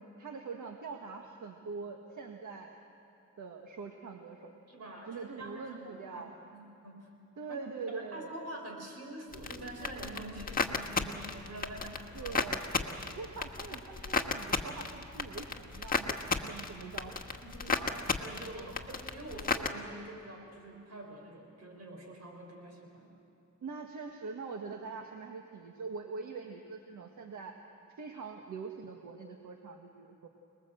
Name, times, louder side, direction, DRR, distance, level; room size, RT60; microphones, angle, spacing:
voice 1, 0.0-2.7 3.4-4.5 5.1-6.3 7.4-8.4 12.1-17.4 17.7-17.8 18.5-18.7 23.6-27.5 28.0-30.3, right 4 dB, 90° right, 2 dB, 1.7 m, -43 dB
voice 2, 4.7-7.1 7.5-7.6 7.9-12.5 17.0-17.1 17.4-23.1, right 1 dB, 60° right, 1 dB, 5.2 m, -46 dB
sound 1, 9.3-19.7, left 4 dB, 30° left, 1.5 m, -34 dB
28.0 x 20.5 x 7.8 m, 2.9 s
wide cardioid pair, 110°, 29 cm